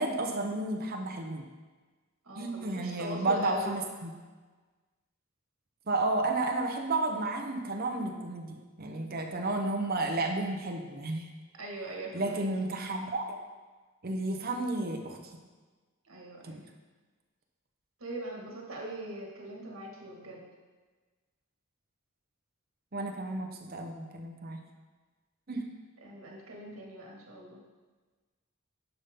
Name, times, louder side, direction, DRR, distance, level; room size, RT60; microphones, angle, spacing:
voice 1, 0.0-1.4 2.3-4.1 5.9-11.3 12.1-13.4 14.0-15.4 16.4-16.6 22.9-24.7 25.5-25.6, right 2 dB, 45° right, 4 dB, 0.9 m, -32 dB
voice 2, 2.3-3.8 11.6-12.5 16.0-16.6 18.0-20.4 26.0-27.6, right 1 dB, 85° right, -1 dB, 1.9 m, -41 dB
10.5 x 5.6 x 3.7 m, 1.3 s
head